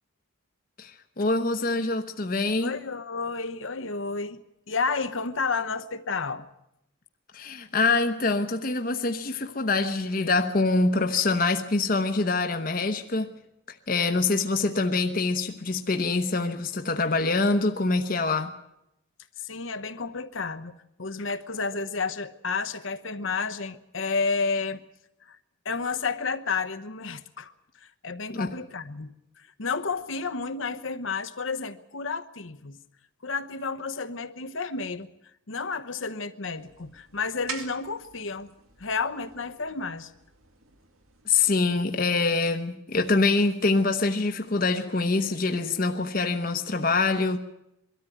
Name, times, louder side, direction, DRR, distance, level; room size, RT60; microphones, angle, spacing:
voice 1, 0.8-2.7 7.3-13.3 13.9-18.5 28.3-28.5 41.3-47.4, left 3 dB, 40° left, 1.0 m, -25 dB
voice 2, 2.6-4.4 4.7-6.5 19.4-20.7 21.0-24.8 25.3-25.4 25.6-27.5 27.8-32.8 33.2-35.1 35.5-38.5 38.8-40.1, left 4 dB, 65° left, 1.0 m, -31 dB
sound 1, 36.6-41.6, right 5 dB, 90° right, 2.3 m, -45 dB
22.5 x 13.5 x 9.3 m
head